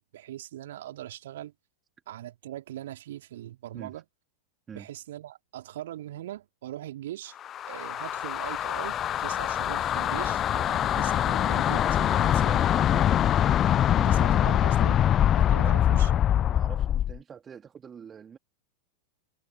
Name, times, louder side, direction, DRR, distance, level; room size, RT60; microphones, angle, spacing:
voice 1, 0.0-1.5 2.1-4.0 4.7-7.4 7.7-12.0 12.4-12.8 14.0-15.0 15.3-16.1, right 13 dB, 60° right, 2.6 m, -41 dB
sound 1, 7.4-17.2, left 10 dB, 30° left, 0.4 m, -24 dB
voice 2, 12.0-13.2 15.5-18.4, right 7 dB, 20° right, 2.2 m, -44 dB
figure-of-eight pair, 90°, 0 cm